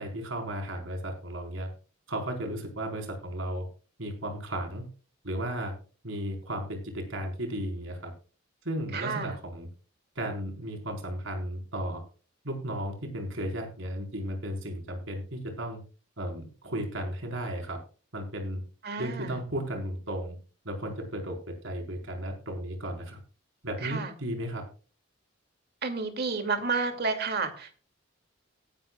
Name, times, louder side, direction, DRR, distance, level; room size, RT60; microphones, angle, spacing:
voice 1, 0.0-1.7 2.1-3.6 4.0-4.8 5.2-5.7 6.0-8.1 8.6-9.7 10.1-12.0 12.4-15.8 16.2-17.8 18.1-18.6 19.0-20.4 20.6-23.2 23.6-24.6, right 1 dB, 70° right, 3 dB, 4.4 m, -34 dB
voice 2, 8.9-9.4 18.8-19.3 23.8-24.1 25.8-27.8, right 4 dB, 50° right, 7 dB, 2.4 m, -31 dB
17.5 x 11.0 x 2.4 m, 0.36 s
head